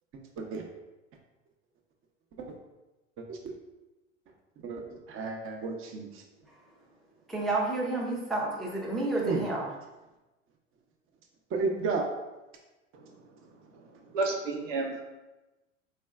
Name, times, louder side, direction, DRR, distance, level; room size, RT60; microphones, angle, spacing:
voice 1, 4.6-6.2 9.2-9.4 11.5-12.1, right 4 dB, 35° right, 2 dB, 0.7 m, -32 dB
voice 2, 7.3-9.7, right 2 dB, ahead, -3 dB, 0.5 m, -30 dB
voice 3, 13.7-15.0, right 3 dB, 75° right, 1 dB, 0.8 m, -32 dB
4.3 x 3.3 x 2.3 m, 1.1 s
hypercardioid pair, 95°, 38 cm